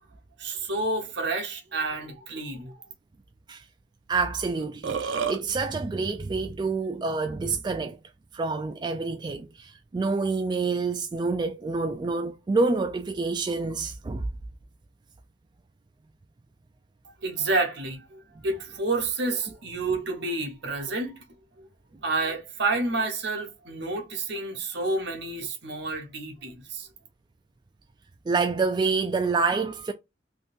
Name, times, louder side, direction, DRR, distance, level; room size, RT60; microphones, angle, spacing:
voice 1, 0.4-2.7 17.2-21.2 21.6-21.7 22.0-26.9, right 3 dB, 65° right, 0.9 m, -29 dB
voice 2, 4.1-8.0 8.3-14.3 28.3-29.9, right 4 dB, 25° right, 0.3 m, -27 dB
Burping eructation, 4.6-5.4, right 6 dB, 85° right, 0.5 m, -29 dB
3.6 x 2.6 x 2.5 m
head